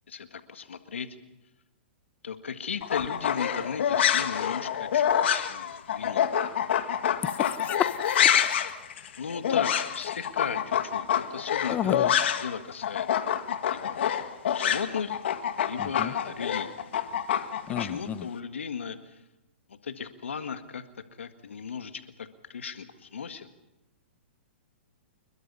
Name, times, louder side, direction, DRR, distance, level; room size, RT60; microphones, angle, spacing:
voice 1, 0.1-1.1 2.2-5.0 5.3-6.2 9.2-13.1 13.7-14.0 14.5-15.2 15.6-16.9 17.8-19.2 19.7-20.8 21.2-23.5, left 6 dB, 90° left, 8 dB, 1.8 m, -36 dB
sound 1, 2.8-12.6 12.8-17.9, left 9 dB, 70° left, 1.9 m, -27 dB
voice 2, 7.4-7.9 11.7-12.1 15.8-16.1 17.7-18.3, left 10 dB, 25° left, 15 dB, 0.9 m, -30 dB
26.5 x 22.0 x 5.6 m, 0.99 s
hypercardioid pair, 135°, 6 cm